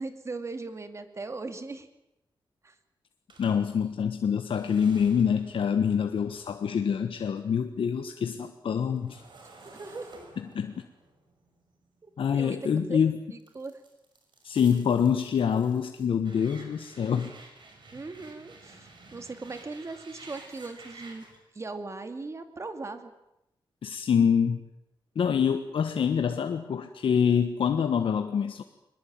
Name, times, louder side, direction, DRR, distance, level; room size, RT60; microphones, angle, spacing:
voice 1, 0.0-1.9 2.6-2.7 9.8-10.1 12.0-13.0 13.3-13.8 17.9-21.2 21.5-23.1, right 3 dB, 35° right, 8 dB, 2.4 m, -39 dB
sound 1, 3.3-7.6 7.9-12.8 13.4-21.4, right 3 dB, 60° right, 6.4 m, -52 dB
voice 2, 3.4-9.2 10.5-10.7 12.2-13.2 14.4-17.3 23.8-24.6 25.1-28.6, left 7 dB, 85° left, 7 dB, 1.4 m, -26 dB
23.0 x 21.0 x 8.9 m, 0.87 s
wide cardioid pair, 140°, 9 cm